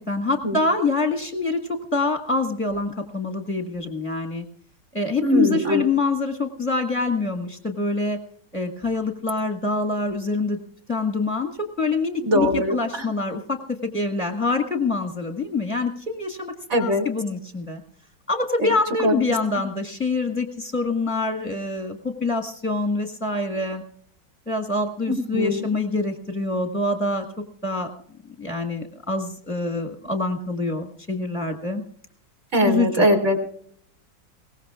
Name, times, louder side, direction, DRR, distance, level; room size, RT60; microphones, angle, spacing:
voice 1, 0.0-4.4 4.9-8.2 8.5-10.6 10.9-13.6 13.9-17.8 18.3-23.8 24.5-27.2 27.6-27.9 28.4-31.8 32.6-32.9, left 3 dB, 5° left, 3 dB, 1.2 m, -25 dB
voice 2, 5.2-5.8 12.2-13.0 16.7-17.0 18.6-18.7 19.0-19.1 25.1-25.7 32.5-33.5, equal, 40° right, 3 dB, 3.2 m, -21 dB
22.0 x 18.5 x 2.4 m, 0.62 s
omnidirectional pair, 2.0 m